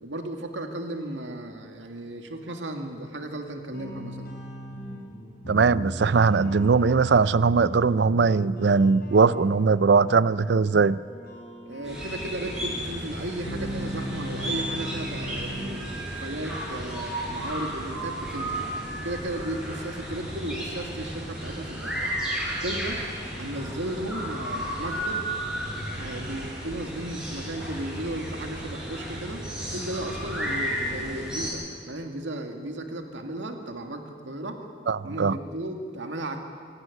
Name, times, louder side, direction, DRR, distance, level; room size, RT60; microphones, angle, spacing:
voice 1, 0.0-4.3 11.6-18.7 19.0-22.1 22.6-23.0 23.4-25.2 25.9-29.4 29.7-34.6 35.0-36.5, right 1 dB, 85° right, 2.2 m, -35 dB
sound 1, 3.7-15.7, equal, 55° left, 4.4 m, -37 dB
voice 2, 5.5-11.0 34.9-35.4, right 4 dB, 65° right, 0.5 m, -20 dB
sound 2, 11.8-31.5, right 1 dB, 5° right, 6.4 m, -33 dB
25.5 x 11.0 x 9.7 m
head